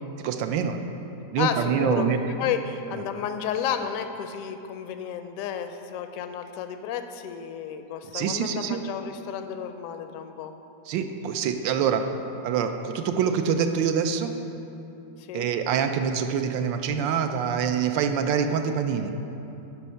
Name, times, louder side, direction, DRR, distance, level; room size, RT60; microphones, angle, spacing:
voice 1, 0.2-0.8 1.3-2.2 8.1-8.8 10.9-12.0 12.4-14.3 15.3-19.1, right 7 dB, 85° right, 7 dB, 1.3 m, -25 dB
voice 2, 1.4-10.5 15.2-15.5, left 8 dB, 70° left, 8 dB, 0.8 m, -32 dB
10.5 x 5.6 x 5.6 m, 2.9 s
omnidirectional pair, 2.0 m